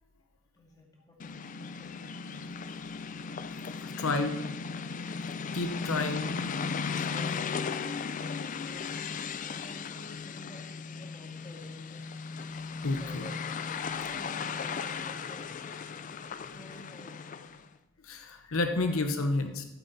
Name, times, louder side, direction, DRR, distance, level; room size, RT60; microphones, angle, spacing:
voice 1, 0.5-2.1 7.0-12.2 13.0-13.5 14.0-17.6 18.5-19.5, left 1 dB, 20° left, -1 dB, 2.2 m, -52 dB
sound 1, 1.2-17.6, left 5 dB, 40° left, 0.4 m, -36 dB
voice 2, 3.8-4.4 5.0-5.1 5.5-6.4 12.8-13.3 18.0-19.6, left 3 dB, 80° left, 6 dB, 0.9 m, -30 dB
13.0 x 7.9 x 4.1 m, 1.0 s
head